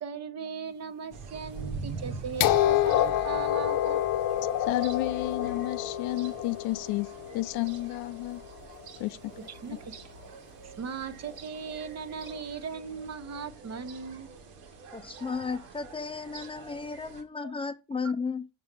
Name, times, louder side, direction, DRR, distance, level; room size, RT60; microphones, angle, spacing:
voice 1, 0.0-4.0 9.6-10.0 10.6-14.3, right 6 dB, 45° right, 1.0 m, -38 dB
sound 1, 1.1-17.2, right 4 dB, 90° right, 1.8 m, -44 dB
sound 2, 2.4-8.3 9.4-9.5, left 12 dB, 65° left, 0.9 m, -28 dB
voice 2, 4.7-8.4 9.0-9.3, left 17 dB, 85° left, 0.6 m, -31 dB
voice 3, 14.9-18.5, left 5 dB, 15° left, 0.6 m, -34 dB
6.0 x 4.6 x 5.9 m
cardioid pair, 95°, 37 cm